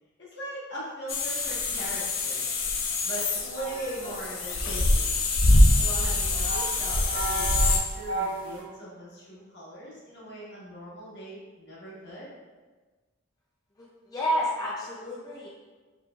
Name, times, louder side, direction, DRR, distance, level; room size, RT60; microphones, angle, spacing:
voice 1, 0.2-2.5 3.0-5.1 5.7-12.3, right 1 dB, 60° left, -7 dB, 1.3 m, -40 dB
sound 1, 1.1-7.8, left 2 dB, 80° left, 0.6 m, -24 dB
sound 2, 3.6-8.6, right 2 dB, 85° right, 0.9 m, -36 dB
voice 2, 13.8-15.5, equal, 20° left, -5 dB, 0.4 m, -30 dB
4.4 x 3.2 x 2.3 m, 1.3 s
head